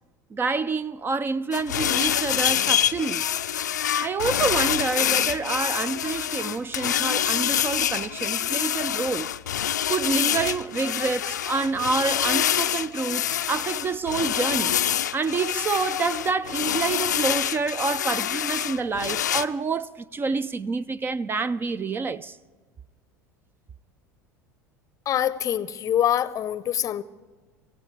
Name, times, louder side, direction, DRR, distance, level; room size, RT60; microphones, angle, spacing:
voice 1, 0.3-3.3 4.0-9.3 9.9-14.8 15.1-22.4, right 4 dB, 25° right, 0.4 m, -27 dB
sound 1, 1.5-19.5, left 10 dB, 75° left, 0.4 m, -26 dB
voice 2, 25.1-27.0, left 10 dB, 35° left, 0.6 m, -24 dB
25.0 x 16.0 x 3.3 m
figure-of-eight pair, 70°, 10 cm